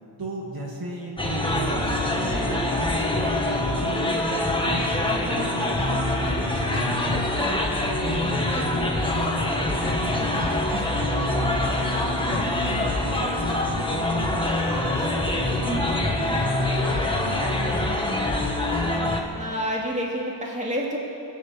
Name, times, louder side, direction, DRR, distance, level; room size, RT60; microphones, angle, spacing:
voice 1, 0.2-4.1 4.6-7.5 7.9-10.5 10.7-14.4 14.7-18.2, equal, 55° right, -2 dB, 2.5 m, -34 dB
sound 1, 1.2-19.2, left 1 dB, 10° left, 1.8 m, -25 dB
voice 2, 19.3-21.0, equal, 15° right, -3 dB, 2.8 m, -28 dB
22.0 x 8.8 x 7.2 m, 2.7 s
wide cardioid pair, 90°, 43 cm